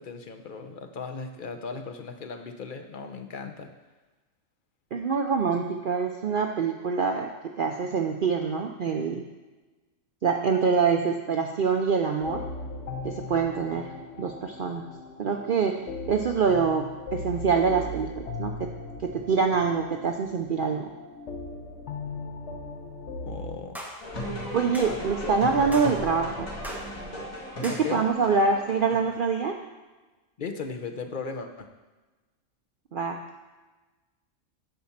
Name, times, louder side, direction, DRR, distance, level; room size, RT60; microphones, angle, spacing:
voice 1, 0.0-3.7 23.2-23.8 24.2-24.5 24.8-25.3 27.7-28.0 30.4-31.7, left 5 dB, 45° left, 5 dB, 0.8 m, -37 dB
voice 2, 4.9-9.2 10.2-12.4 13.0-13.9 14.2-14.9 15.2-15.8 16.1-18.1 18.4-18.5 19.0-20.9 24.5-26.5 27.6-29.6 32.9-33.2, right 5 dB, 55° right, 3 dB, 0.6 m, -25 dB
sound 1, 12.2-23.6, left 3 dB, 60° left, 1.1 m, -38 dB
sound 2, 23.8-24.0 24.7-24.9 25.7-25.9 26.6-26.9 27.6-27.9, equal, ahead, 1.1 m, -38 dB
sound 3, 24.0-29.2, equal, 90° left, 2.4 m, -36 dB
10.5 x 4.3 x 7.2 m, 1.2 s
omnidirectional pair, 1.4 m